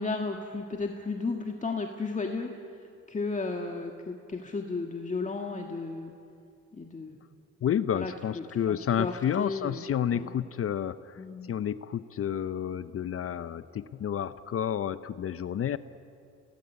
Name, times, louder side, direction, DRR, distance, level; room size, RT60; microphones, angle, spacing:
voice 1, 0.0-2.5 3.1-6.1 6.8-7.2 7.9-10.3 11.2-11.5, left 3 dB, 25° left, 3 dB, 1.7 m, -34 dB
voice 2, 7.6-11.2 11.5-15.8, left 9 dB, 50° left, 14 dB, 0.7 m, -30 dB
27.5 x 18.5 x 8.3 m, 2.6 s
cardioid pair, 90°, 30 cm